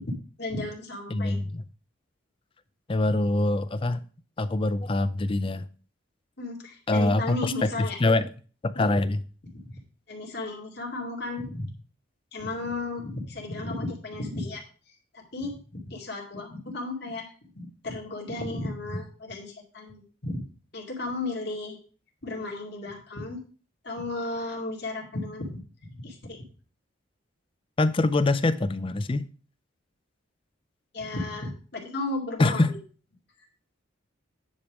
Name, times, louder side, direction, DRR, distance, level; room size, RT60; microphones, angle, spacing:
voice 1, 0.4-1.4 6.4-8.0 9.5-9.6 10.1-11.7 12.3-14.6 15.1-17.3 17.6-20.4 20.7-21.8 22.2-23.4 23.8-26.4 30.9-32.8, left 2 dB, 55° left, 2.3 m, -34 dB
voice 2, 1.1-1.6 2.9-4.0 4.4-5.7 6.9-8.3 8.6-9.2 27.8-29.3 32.4-32.8, left 2 dB, 25° left, 0.4 m, -24 dB
9.8 x 3.5 x 6.1 m
head